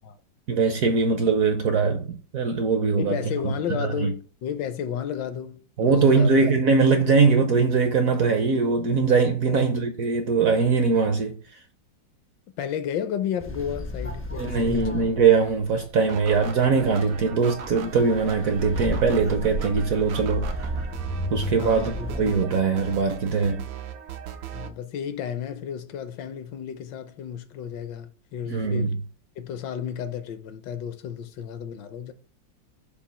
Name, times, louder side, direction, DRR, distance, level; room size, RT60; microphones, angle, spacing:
voice 1, 0.5-3.2 3.7-4.1 5.8-11.3 14.4-20.5 21.3-23.6 28.5-28.9, right 4 dB, 65° right, 0.9 m, -21 dB
voice 2, 3.0-6.4 7.0-7.2 9.5-9.6 12.6-14.9 21.6-22.1 24.5-29.0 29.4-32.1, left 9 dB, 75° left, 1.2 m, -32 dB
sound 1, 13.4-22.4, left 1 dB, 20° left, 0.4 m, -33 dB
sound 2, 16.1-24.7, right 8 dB, 85° right, 1.4 m, -38 dB
7.0 x 2.4 x 5.5 m
omnidirectional pair, 2.0 m